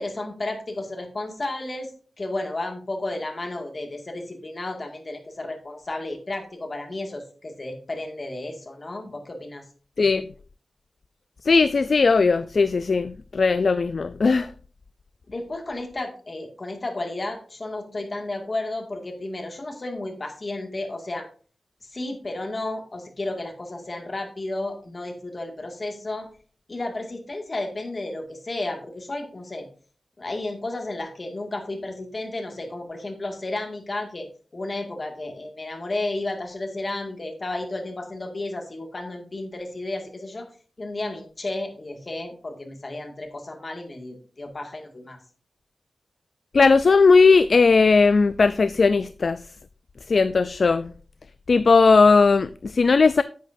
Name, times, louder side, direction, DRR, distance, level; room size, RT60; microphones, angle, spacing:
voice 1, 0.0-1.9 2.2-9.6 15.3-21.3 21.8-26.3 26.7-29.7 30.2-34.3 34.5-40.5 40.8-45.2, left 2 dB, 35° left, 2.0 m, -32 dB
voice 2, 10.0-10.3 11.4-14.5 46.5-49.4 50.1-50.9 51.5-53.2, left 4 dB, 55° left, 0.3 m, -18 dB
10.0 x 8.5 x 2.6 m
wide cardioid pair, 120°, 0 cm